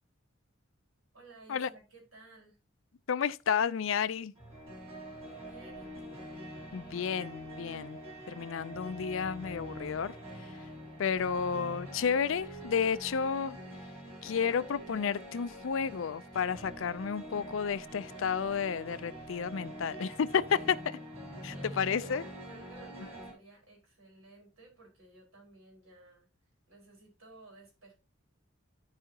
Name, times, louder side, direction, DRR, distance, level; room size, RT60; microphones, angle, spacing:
voice 1, 1.1-2.6 5.2-6.3 21.5-26.3 26.7-27.9, right 2 dB, 85° right, 4.6 m, -56 dB
voice 2, 3.1-4.3 6.7-8.0 8.3-10.2 11.0-13.6 14.2-21.0 21.4-22.2, left 6 dB, 70° left, 0.4 m, -31 dB
sound 1, 4.4-23.3, equal, 30° right, 3.9 m, -45 dB
13.0 x 4.9 x 2.8 m
head